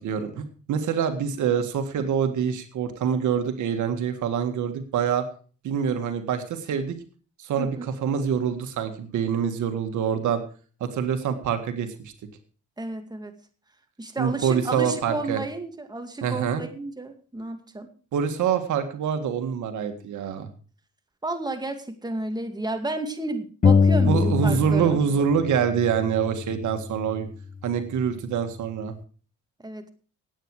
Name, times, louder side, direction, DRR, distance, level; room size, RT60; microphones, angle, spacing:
voice 1, 0.0-5.2 5.6-7.0 7.4-10.4 10.8-12.1 14.2-15.4 16.2-16.6 18.1-20.5 24.1-27.3 27.6-28.9, right 7 dB, 75° right, 7 dB, 1.9 m, -25 dB
voice 2, 12.8-13.3 14.0-17.9 21.2-25.0 29.6-29.9, right 2 dB, 15° right, 6 dB, 2.2 m, -32 dB
sound 1, 23.6-25.1 25.4-27.2, left 5 dB, 30° left, 0.7 m, -23 dB
17.5 x 8.8 x 4.8 m, 0.39 s
cardioid pair, 90°, 30 cm